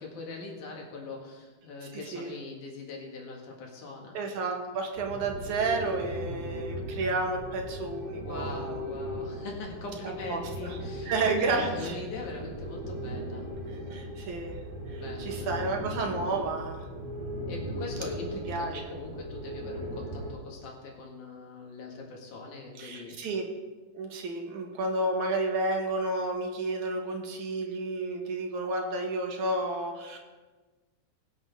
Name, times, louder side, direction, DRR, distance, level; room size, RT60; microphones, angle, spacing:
voice 1, 0.0-4.2 8.2-13.6 14.9-15.6 17.5-23.3, left 3 dB, 70° left, 0 dB, 3.3 m, -41 dB
voice 2, 1.9-2.3 4.1-8.8 10.3-10.8 11.1-12.0 13.9-14.6 14.9-16.8 18.5-18.8 22.8-23.5 23.9-30.2, right 3 dB, 70° right, 2 dB, 2.6 m, -31 dB
sound 1, 4.9-20.3, equal, 35° right, 1.6 m, -37 dB
21.5 x 7.7 x 3.6 m, 1.3 s
omnidirectional pair, 3.7 m